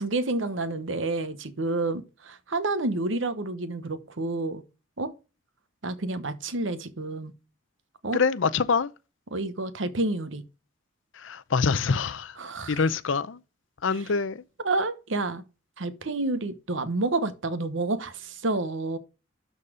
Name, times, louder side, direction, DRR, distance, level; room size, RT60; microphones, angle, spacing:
voice 1, 0.0-4.6 5.0-5.1 5.8-7.3 8.0-8.2 9.3-10.4 12.4-12.8 13.9-14.1 14.6-15.4 15.8-19.0, right 2 dB, 75° right, 1.1 m, -29 dB
voice 2, 8.1-8.9 11.2-12.4 12.7-13.4 13.8-14.4, left 5 dB, 75° left, 0.6 m, -25 dB
12.5 x 4.2 x 5.0 m
head